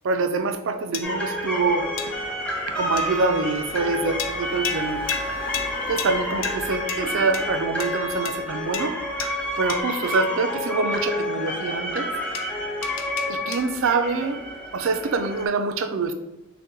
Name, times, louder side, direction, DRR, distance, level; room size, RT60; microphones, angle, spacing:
voice 1, 0.0-1.9 2.8-5.0 5.9-9.0 9.3-12.1 13.3-14.4 14.7-16.1, right 4 dB, 70° right, 7 dB, 0.4 m, -25 dB
sound 1, 0.9-1.4 2.0-2.4 3.0-3.4 4.2-10.1 12.3-13.9, left 7 dB, 70° left, 0.4 m, -35 dB
sound 2, 1.0-15.5, left 1 dB, 5° left, 0.5 m, -29 dB
Car / Engine, 1.6-9.8, equal, 45° left, 1.0 m, -44 dB
6.3 x 2.2 x 2.7 m, 1.0 s
head